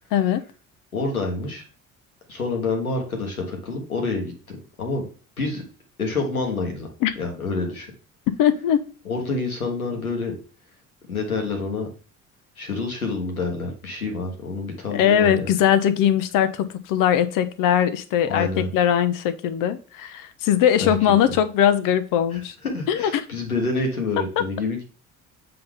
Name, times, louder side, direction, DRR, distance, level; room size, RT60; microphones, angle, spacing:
voice 1, 0.1-0.4 7.0-7.1 8.3-8.8 14.9-22.5 22.9-23.2, left 9 dB, 50° left, 12 dB, 0.8 m, -20 dB
voice 2, 0.9-1.6 2.3-5.1 5.4-5.6 6.0-6.9 7.2-7.9 9.0-10.3 11.1-11.9 12.6-15.5 18.3-18.7 20.8-21.1 22.3-24.8, left 3 dB, 85° left, 2 dB, 1.3 m, -28 dB
7.7 x 3.9 x 3.5 m, 0.38 s
figure-of-eight pair, 50°, 42 cm